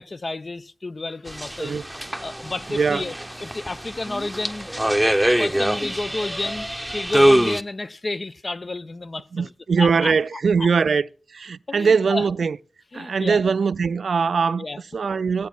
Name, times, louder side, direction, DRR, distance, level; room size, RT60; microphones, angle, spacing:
voice 1, 0.0-1.8 2.2-3.1 3.4-4.7 5.4-6.7 6.9-10.7 11.7-12.3 12.9-13.4 14.6-14.8, left 2 dB, 50° left, 0.7 m, -31 dB
sound 1, 1.3-7.6, right 1 dB, 5° right, 0.8 m, -23 dB
voice 2, 9.3-11.0 11.3-12.6 12.9-14.6 14.9-15.5, right 5 dB, 80° right, 0.3 m, -21 dB
16.0 x 8.2 x 2.3 m
cardioid pair, 45°, 0 cm